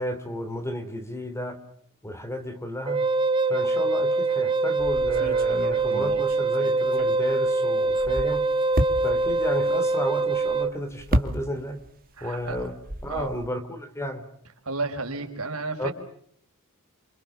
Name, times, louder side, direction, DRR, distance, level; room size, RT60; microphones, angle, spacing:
voice 1, 0.0-1.6 2.0-3.1 3.5-8.5 9.0-11.8 12.2-12.8 13.0-14.2 15.8-15.9, equal, 10° left, 10 dB, 3.3 m, -33 dB
Wind instrument woodwind instrument, 2.9-10.7, right 3 dB, 20° right, 1.8 m, -24 dB
sound 1, 4.8-7.5 7.8-11.9 12.2-13.5, right 1 dB, 40° right, 2.5 m, -31 dB
voice 2, 12.2-12.6 13.1-13.3 14.6-15.9, right 3 dB, 70° right, 5 dB, 4.9 m, -31 dB
29.0 x 26.5 x 7.3 m, 0.64 s
head